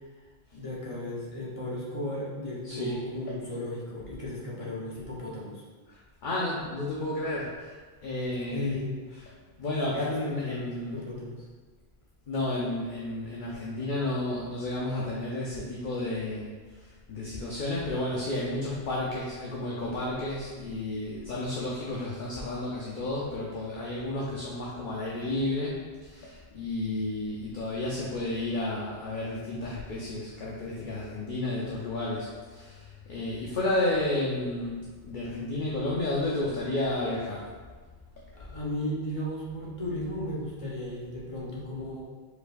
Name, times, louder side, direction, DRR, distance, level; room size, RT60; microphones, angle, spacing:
voice 1, 0.5-5.6 8.5-9.0 9.9-11.4 38.3-42.0, left 1 dB, 35° left, -6 dB, 1.0 m, -35 dB
voice 2, 2.6-3.0 5.9-6.0 6.2-8.7 9.6-11.0 12.3-16.5 16.8-37.5, left 2 dB, 55° left, -5 dB, 0.8 m, -32 dB
4.6 x 4.5 x 2.5 m, 1.4 s
omnidirectional pair, 1.1 m